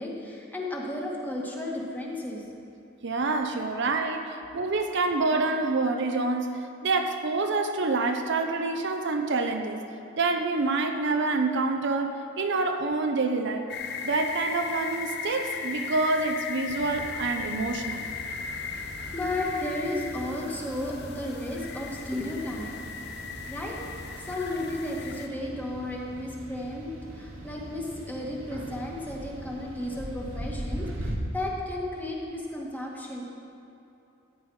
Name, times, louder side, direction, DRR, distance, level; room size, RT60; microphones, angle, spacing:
voice 1, 0.0-2.4 4.4-4.5 18.7-22.7 23.5-23.8 24.2-33.2, left 1 dB, 10° left, -3 dB, 1.8 m, -33 dB
voice 2, 3.0-9.8 10.2-13.7 14.0-18.1 26.0-26.1, right 3 dB, 60° right, 5 dB, 0.7 m, -27 dB
sound 1, 13.7-25.3, left 5 dB, 55° left, 0.8 m, -37 dB
sound 2, 16.6-31.2, right 1 dB, 75° right, 1.7 m, -41 dB
15.0 x 9.9 x 4.8 m, 2.8 s
head